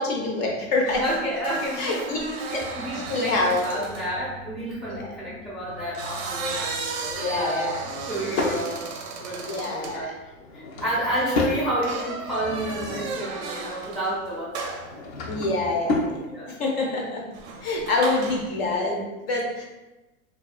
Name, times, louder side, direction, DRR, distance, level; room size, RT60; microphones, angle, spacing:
voice 1, 0.0-1.0 1.8-2.2 3.1-3.9 4.9-5.1 7.2-7.8 9.4-10.1 15.3-16.1 16.5-17.2 17.6-19.6, left 2 dB, 50° left, -1 dB, 0.5 m, -26 dB
sound 1, 0.8-4.1 5.7-10.0 11.8-14.2 14.5-14.9 17.3-18.5, right 4 dB, 55° right, 0.5 m, -35 dB
voice 2, 1.0-7.7 8.0-8.8 9.2-10.1 10.5-14.8 16.3-16.5, right 1 dB, ahead, -8 dB, 0.5 m, -30 dB
Drawer open or close / Wood, 7.7-8.6 10.3-11.6 12.2-13.3 14.7-16.2, left 2 dB, 85° left, 0.7 m, -30 dB
2.3 x 2.3 x 2.4 m, 1.1 s
hypercardioid pair, 130°, 41 cm